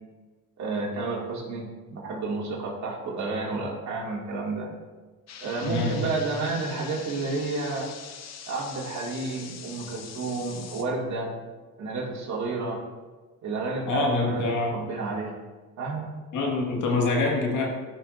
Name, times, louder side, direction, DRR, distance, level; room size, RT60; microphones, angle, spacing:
voice 1, 0.6-4.7 5.4-7.9 8.5-11.3 11.8-12.8 13.4-15.3 15.8-16.1, right 3 dB, 70° right, -2 dB, 2.3 m, -31 dB
sound 1, 5.3-10.8, left 7 dB, 60° left, 0.9 m, -43 dB
voice 2, 5.6-6.0 13.9-14.7 16.3-17.6, left 3 dB, 80° left, -1 dB, 2.0 m, -25 dB
13.5 x 5.9 x 2.6 m, 1.3 s
cardioid pair, 90°, 30 cm